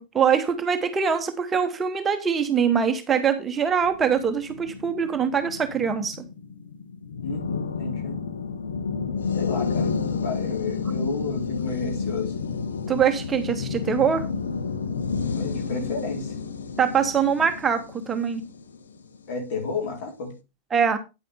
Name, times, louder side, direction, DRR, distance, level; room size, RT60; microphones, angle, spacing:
voice 1, 0.0-6.2 12.9-14.3 16.8-18.4 20.7-21.0, right 7 dB, 20° right, 1.0 m, -23 dB
sound 1, 3.8-19.3, left 5 dB, 70° left, 0.9 m, -31 dB
voice 2, 7.2-8.2 9.0-12.3 15.3-16.3 19.3-20.3, left 4 dB, 45° left, 4.3 m, -32 dB
9.7 x 8.8 x 3.6 m
figure-of-eight pair, 90°, 0 cm